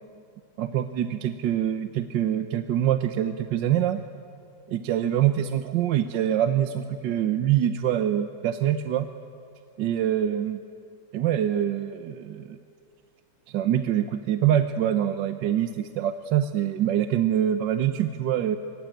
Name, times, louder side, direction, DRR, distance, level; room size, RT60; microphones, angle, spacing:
voice 1, 0.6-4.0 4.7-9.1 9.8-10.6 11.1-12.6 13.5-18.6, right 10 dB, 70° right, 9 dB, 1.4 m, -25 dB
25.0 x 23.5 x 9.2 m, 2.5 s
omnidirectional pair, 2.1 m